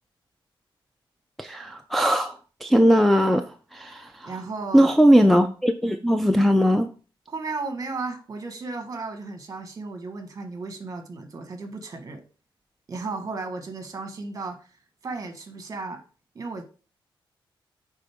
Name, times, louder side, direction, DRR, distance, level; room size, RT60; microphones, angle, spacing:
voice 1, 1.4-3.4 3.7-4.3 4.7-6.9, equal, ahead, 4 dB, 0.4 m, -19 dB
voice 2, 4.2-4.9 7.3-12.2 12.9-14.7 15.0-16.0 16.3-16.6, right 3 dB, 40° right, 7 dB, 1.3 m, -34 dB
9.0 x 3.7 x 3.5 m, 0.37 s
wide cardioid pair, 125°, 9 cm